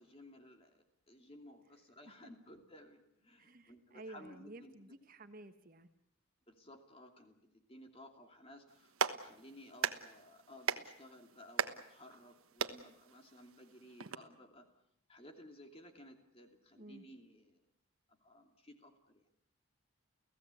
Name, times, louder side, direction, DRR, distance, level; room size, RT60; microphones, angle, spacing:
voice 1, 0.0-5.0 6.5-14.7 15.1-17.6 18.1-19.2, left 1 dB, 25° left, 4 dB, 2.7 m, -57 dB
voice 2, 3.4-5.9 16.7-17.1, right 2 dB, 40° right, 8 dB, 1.3 m, -53 dB
Clapping, 8.7-14.2, right 6 dB, 80° right, 1.3 m, -40 dB
30.0 x 16.0 x 8.4 m, 0.76 s
head